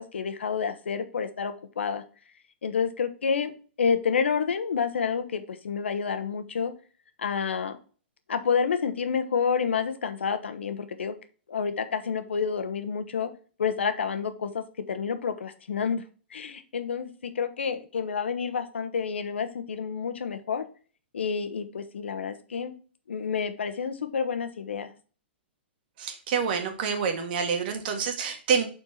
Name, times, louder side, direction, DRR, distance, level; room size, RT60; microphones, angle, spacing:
voice 1, 0.0-2.0 2.6-3.5 3.8-6.7 7.2-7.8 8.3-11.1 11.5-13.3 13.6-16.0 16.3-20.6 21.1-22.7 23.1-24.9, left 6 dB, 85° left, 10 dB, 1.0 m, -29 dB
voice 2, 26.0-28.6, right 6 dB, 55° right, 5 dB, 1.7 m, -27 dB
7.4 x 4.4 x 4.3 m, 0.39 s
hypercardioid pair, 130°, 6 cm